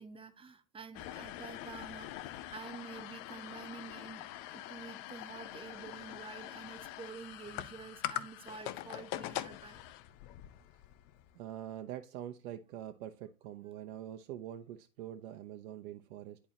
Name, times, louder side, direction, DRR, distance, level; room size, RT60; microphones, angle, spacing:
voice 1, 0.0-2.1 2.5-9.8, right 5 dB, 10° right, 0.7 m, -49 dB
sound 1, 0.9-11.3, left 14 dB, 45° left, 0.7 m, -44 dB
voice 2, 11.3-16.4, right 11 dB, 60° right, 0.9 m, -44 dB
10.5 x 4.6 x 2.9 m
hypercardioid pair, 95°, 47 cm